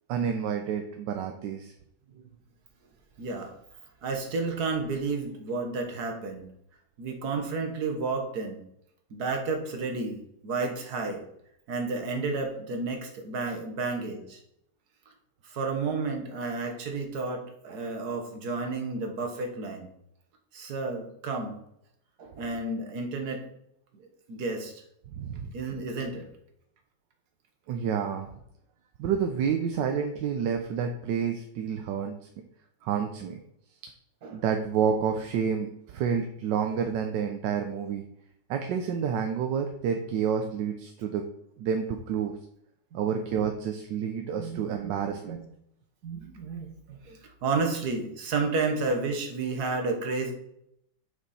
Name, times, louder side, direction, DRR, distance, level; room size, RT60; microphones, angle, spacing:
voice 1, 0.1-1.7 25.2-25.5 27.7-28.3 29.0-32.1 32.8-33.4 34.3-38.0 38.5-41.2 41.6-42.3 42.9-45.4, right 7 dB, 85° right, 5 dB, 1.3 m, -29 dB
voice 2, 3.2-3.5 4.0-6.5 7.0-8.6 9.1-11.2 11.7-14.4 15.4-19.9 20.5-21.5 22.2-23.4 23.9-24.8 25.5-26.3 34.2-34.4 42.9-43.0 44.4-45.4 46.0-50.3, right 3 dB, 65° right, 4 dB, 1.7 m, -31 dB
6.2 x 5.4 x 4.2 m, 0.75 s
omnidirectional pair, 1.9 m